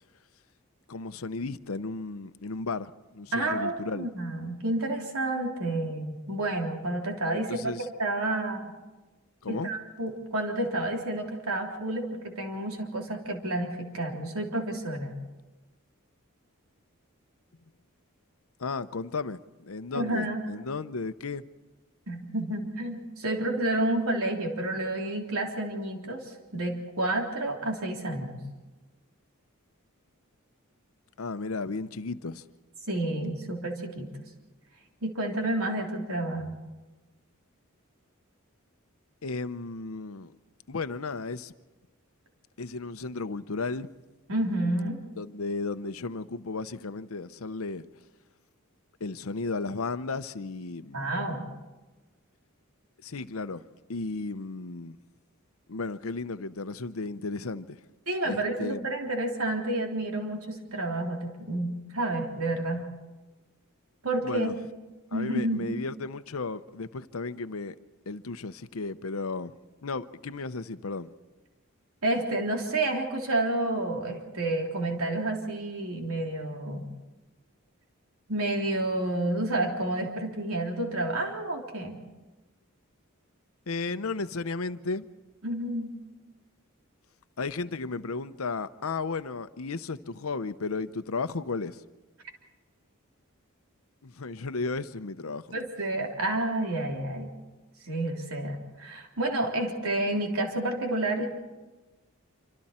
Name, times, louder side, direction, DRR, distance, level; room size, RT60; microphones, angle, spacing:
voice 1, 0.9-4.1 7.3-7.9 9.4-9.7 18.6-21.4 31.2-32.4 39.2-40.3 40.7-41.5 42.6-43.9 45.2-47.8 49.0-51.1 53.0-53.6 53.9-55.0 55.7-57.8 58.2-58.9 64.2-64.6 65.1-67.7 68.1-69.5 69.8-71.1 83.7-85.1 87.4-91.8 94.0-95.5, left 3 dB, 80° left, 0.8 m, -34 dB
voice 2, 3.3-7.6 8.0-8.7 9.5-15.2 19.9-20.4 22.1-26.2 26.5-28.4 32.9-34.1 35.0-36.5 44.3-45.0 50.9-51.5 58.1-62.9 64.0-64.5 65.1-65.7 72.0-76.9 78.3-82.0 85.4-85.9 95.5-97.3 97.8-101.3, right 1 dB, 85° right, 3.4 m, -30 dB
26.5 x 26.0 x 4.4 m
head